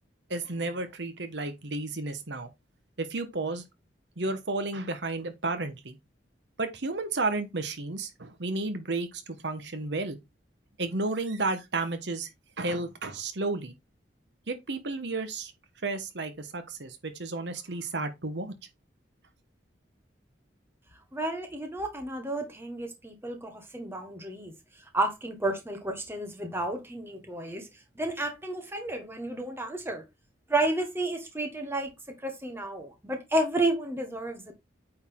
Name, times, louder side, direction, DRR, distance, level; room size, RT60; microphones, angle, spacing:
voice 1, 0.3-2.5 3.0-3.6 4.2-6.0 6.6-10.2 10.8-12.3 12.6-13.7 14.5-15.5 15.8-18.5, right 3 dB, 70° right, 1.1 m, -32 dB
voice 2, 21.1-24.5 24.9-27.7 28.0-30.0 30.5-31.9 32.2-34.5, right 2 dB, 15° right, 1.5 m, -31 dB
8.8 x 4.1 x 3.7 m
head